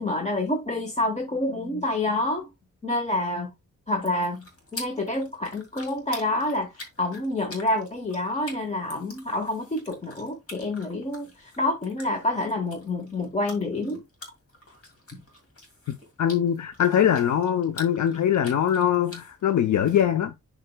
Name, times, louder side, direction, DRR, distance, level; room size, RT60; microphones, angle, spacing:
voice 1, 0.0-2.5 2.8-3.5 3.9-4.4 4.7-6.7 7.0-14.0 15.1-15.2, left 2 dB, 25° left, 1.1 m, -28 dB
sound 1, 3.9-20.0, left 2 dB, 50° left, 2.3 m, -46 dB
voice 2, 16.2-20.3, left 9 dB, 75° left, 0.7 m, -22 dB
11.0 x 4.4 x 2.2 m
wide cardioid pair, 165°, 30 cm